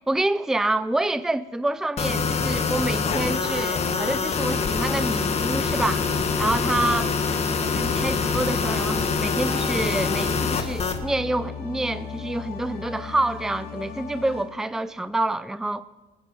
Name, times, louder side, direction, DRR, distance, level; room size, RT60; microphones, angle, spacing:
voice 1, 0.1-6.1 6.4-7.1 7.8-15.8, right 2 dB, 5° right, 0.5 m, -27 dB
sound 1, 2.0-11.0, left 5 dB, 40° left, 1.6 m, -25 dB
sound 2, 5.4-14.4, left 5 dB, 65° left, 3.5 m, -37 dB
19.0 x 10.5 x 6.7 m
cardioid pair, 110°, 17 cm